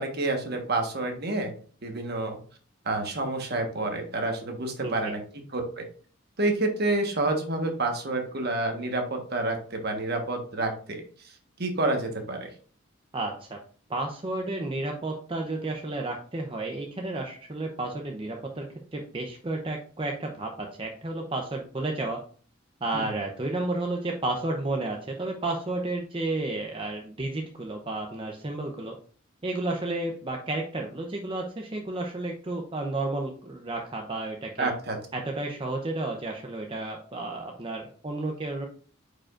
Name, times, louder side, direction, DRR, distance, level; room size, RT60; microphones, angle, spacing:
voice 1, 0.0-1.5 1.8-2.4 2.8-5.2 5.5-5.8 6.4-11.0 11.6-12.5 22.9-23.1 34.6-35.0, right 2 dB, 50° right, 4 dB, 1.4 m, -28 dB
voice 2, 4.8-5.1 13.1-13.6 13.9-18.7 18.9-22.2 22.8-29.0 29.4-34.7 35.1-38.7, right 2 dB, 25° right, 2 dB, 0.7 m, -32 dB
8.9 x 5.1 x 2.5 m, 0.43 s
head